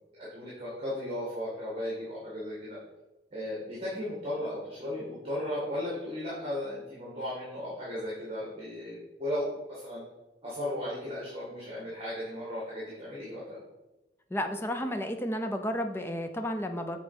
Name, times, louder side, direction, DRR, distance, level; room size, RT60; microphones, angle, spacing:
voice 1, 0.1-2.8 3.3-10.0 10.4-13.6, left 1 dB, 30° right, -7 dB, 2.0 m, -36 dB
voice 2, 14.3-17.0, equal, 15° left, 6 dB, 0.5 m, -32 dB
7.2 x 3.9 x 5.1 m, 1.1 s
head